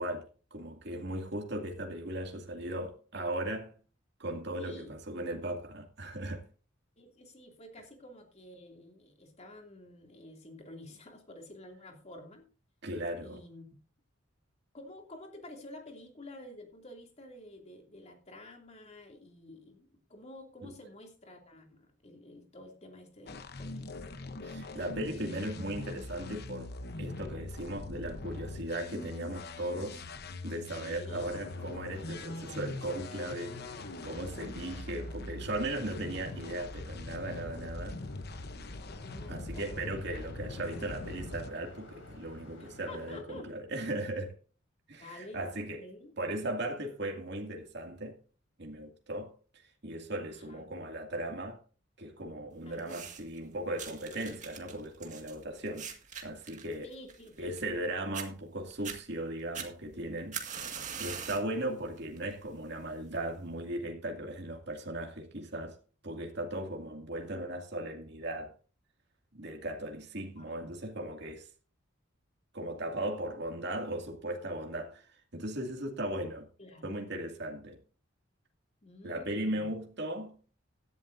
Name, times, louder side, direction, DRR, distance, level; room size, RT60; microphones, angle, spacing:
voice 1, 0.0-3.7 4.2-6.4 12.8-13.4 20.6-20.7 24.4-26.7 27.0-30.0 30.4-33.6 34.0-38.0 39.3-44.3 44.9-45.8 46.2-48.2 48.6-49.3 49.8-51.6 52.0-55.9 56.2-56.9 57.4-60.4 61.0-65.8 66.0-68.5 69.3-71.5 72.5-76.5 76.8-77.8 79.0-80.4, right 1 dB, 60° right, 2.4 m, -37 dB
voice 2, 4.6-4.9 7.0-12.5 13.2-13.7 14.7-23.9 30.9-31.3 34.7-35.0 38.9-39.9 42.9-43.5 45.0-46.1 50.5-50.6 52.6-53.2 56.8-57.5 70.4-70.7 76.6-76.8 78.8-79.7, left 1 dB, 35° left, 2.7 m, -50 dB
sound 1, 23.3-41.5, left 2 dB, 55° left, 0.9 m, -42 dB
sound 2, 31.1-43.2, left 1 dB, 80° left, 4.1 m, -51 dB
sound 3, 52.8-53.4 53.8-57.8 58.1-58.3 58.7-59.0 59.5-61.5 62.0-62.3 63.1-63.2, right 7 dB, 40° right, 2.0 m, -42 dB
17.0 x 11.0 x 2.7 m
head